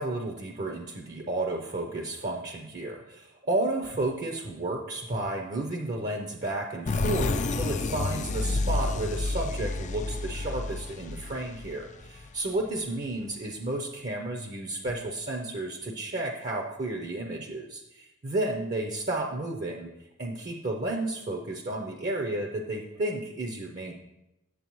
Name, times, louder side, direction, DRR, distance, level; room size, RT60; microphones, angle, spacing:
voice 1, 0.0-19.9 20.2-23.9, right 2 dB, 40° right, 3 dB, 0.6 m, -32 dB
sound 1, 6.9-12.4, left 3 dB, 35° left, 0.4 m, -30 dB
8.3 x 7.4 x 3.0 m, 0.92 s
head